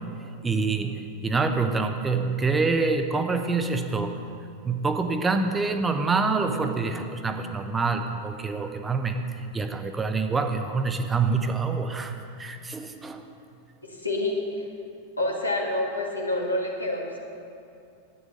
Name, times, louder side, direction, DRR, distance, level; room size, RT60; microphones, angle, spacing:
voice 1, 0.4-4.1 4.6-9.3 9.5-13.2, right 4 dB, 15° right, 6 dB, 0.8 m, -26 dB
voice 2, 13.8-14.7 15.2-17.2, left 1 dB, 85° left, -1 dB, 1.8 m, -28 dB
11.0 x 9.3 x 6.5 m, 2.6 s
figure-of-eight pair, 90°, 0 cm